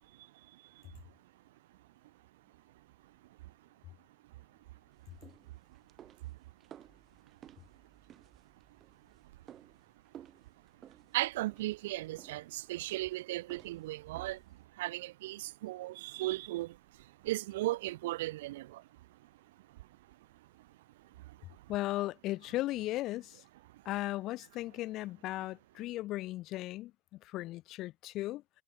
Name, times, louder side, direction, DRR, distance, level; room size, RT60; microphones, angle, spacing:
voice 1, 0.5-0.8 11.1-14.4 14.8-16.8 17.2-18.8 21.3-21.4, right 17 dB, 55° right, 0.6 m, -36 dB
sound 1, 4.9-14.6, right 10 dB, 30° right, 3.2 m, -57 dB
voice 2, 21.7-23.4 23.8-28.4, left 16 dB, 35° left, 0.5 m, -36 dB
figure-of-eight pair, 90°, 0 cm